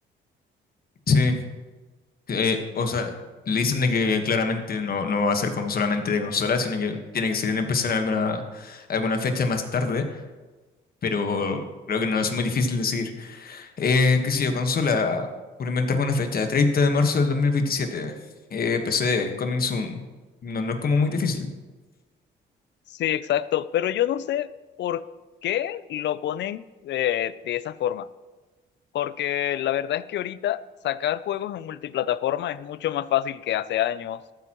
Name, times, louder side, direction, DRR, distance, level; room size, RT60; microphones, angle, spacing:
voice 1, 1.1-1.4 2.3-3.2 3.5-10.2 11.0-15.3 15.6-18.1 18.5-20.0 20.4-21.5, left 4 dB, 50° left, 6 dB, 1.4 m, -24 dB
voice 2, 22.9-24.5 24.8-25.0 25.4-28.1 28.9-34.2, left 12 dB, 65° left, 17 dB, 0.4 m, -27 dB
13.5 x 8.4 x 3.0 m, 1.2 s
cardioid pair, 90°, 20 cm